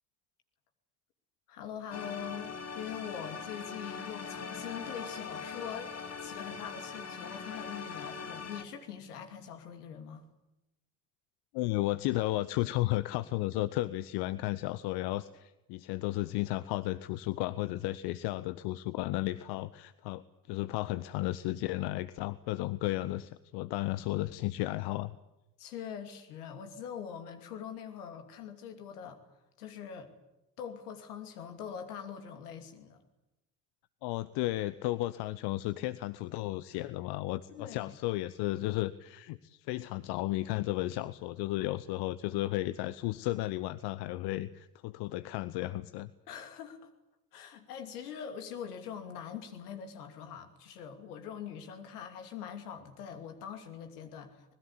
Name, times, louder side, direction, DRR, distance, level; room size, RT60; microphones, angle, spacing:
voice 1, 1.5-10.2 25.6-29.2 29.6-30.1 30.6-33.0 37.5-37.9 46.3-46.9 47.3-54.5, left 8 dB, 70° left, 7 dB, 2.8 m, -43 dB
sound 1, 1.9-8.6, left 5 dB, 35° left, 3.1 m, -41 dB
voice 2, 11.5-25.2 34.0-46.1, left 17 dB, 55° left, 15 dB, 0.9 m, -34 dB
26.0 x 20.5 x 8.5 m, 0.95 s
figure-of-eight pair, 50°, 46 cm